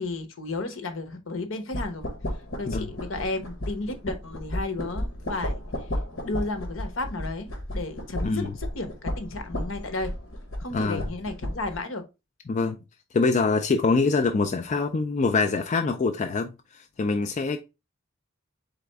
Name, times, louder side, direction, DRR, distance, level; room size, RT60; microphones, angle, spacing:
voice 1, 0.0-2.1 2.6-5.6 6.2-10.1 10.6-12.1, left 2 dB, 65° left, 0.9 m, -33 dB
sound 1, 1.7-11.8, left 1 dB, 85° left, 1.2 m, -34 dB
voice 2, 8.2-8.6 10.7-11.0 12.5-12.8 13.1-17.6, left 4 dB, 35° left, 0.4 m, -24 dB
4.1 x 3.6 x 3.4 m
head